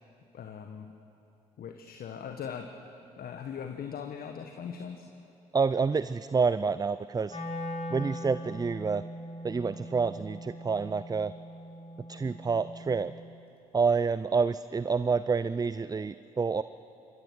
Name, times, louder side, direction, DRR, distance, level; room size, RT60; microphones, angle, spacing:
voice 1, 0.3-0.9 1.6-5.1, left 7 dB, 55° left, 5 dB, 1.3 m, -40 dB
voice 2, 5.5-7.4 7.9-9.0 9.4-11.3 12.1-13.1 13.7-16.6, right 5 dB, 20° right, 15 dB, 0.5 m, -28 dB
Wind instrument woodwind instrument, 7.3-13.3, equal, 35° left, 5.1 m, -41 dB
26.0 x 21.5 x 6.1 m, 2.8 s
hypercardioid pair, 45°, 18 cm